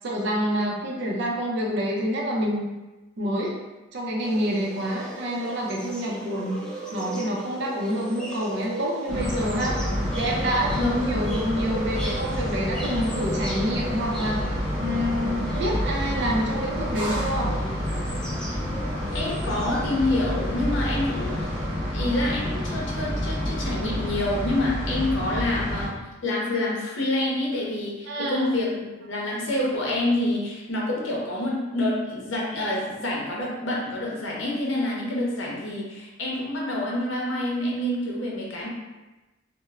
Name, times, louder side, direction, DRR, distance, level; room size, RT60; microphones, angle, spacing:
voice 1, 0.0-2.7 3.2-3.6 3.9-6.6 6.9-9.7 10.1-14.4 14.8-17.6 28.1-28.5, equal, 60° right, -2 dB, 0.5 m, -27 dB
sound 1, 4.2-21.7, right 1 dB, 5° left, 0.3 m, -37 dB
sound 2, 9.1-25.9, equal, 25° right, 1.1 m, -29 dB
voice 2, 19.1-21.5 21.9-26.0 26.2-38.7, left 1 dB, 75° left, -3 dB, 0.6 m, -27 dB
3.0 x 2.0 x 2.3 m, 1.1 s
head